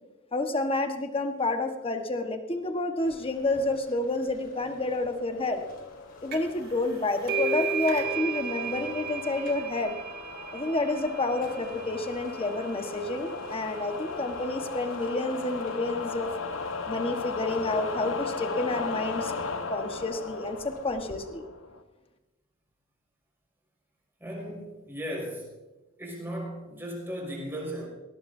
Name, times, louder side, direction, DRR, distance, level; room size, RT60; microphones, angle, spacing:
voice 1, 0.3-5.6 6.2-10.0 10.5-16.3 16.9-19.3 19.7-21.4, left 2 dB, 30° left, 5 dB, 1.4 m, -29 dB
sound 1, 3.0-21.2, left 2 dB, 45° left, 2.3 m, -49 dB
sound 2, 5.3-21.8, left 4 dB, 75° left, 1.1 m, -37 dB
sound 3, 6.3-6.6 6.9-14.2, right 5 dB, 50° right, 2.3 m, -35 dB
voice 2, 24.2-25.5 26.0-27.9, equal, 10° right, -2 dB, 5.9 m, -36 dB
19.5 x 18.5 x 2.8 m, 1.1 s
head